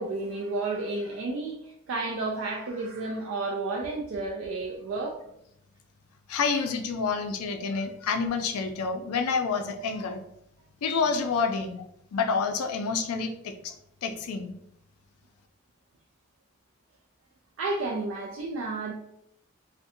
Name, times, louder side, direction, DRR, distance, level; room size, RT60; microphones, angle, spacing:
voice 1, 0.0-5.2 17.6-18.9, right 3 dB, 60° right, -1 dB, 0.3 m, -31 dB
voice 2, 6.3-10.2 10.8-11.8 12.1-13.7 14.0-14.5, left 5 dB, 90° left, 6 dB, 0.4 m, -28 dB
2.5 x 2.1 x 2.6 m, 0.75 s
head